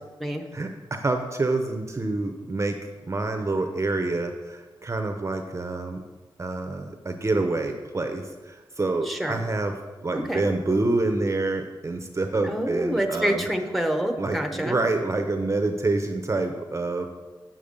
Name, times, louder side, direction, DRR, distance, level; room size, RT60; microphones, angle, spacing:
voice 1, 0.5-2.7 3.1-6.0 6.4-9.7 10.0-13.4 14.2-17.1, right 2 dB, 30° right, 6 dB, 0.7 m, -27 dB
voice 2, 9.0-9.4 10.1-10.5 12.4-14.8, right 1 dB, ahead, 5 dB, 0.9 m, -27 dB
7.4 x 7.0 x 5.1 m, 1.3 s
cardioid pair, 75°, 9 cm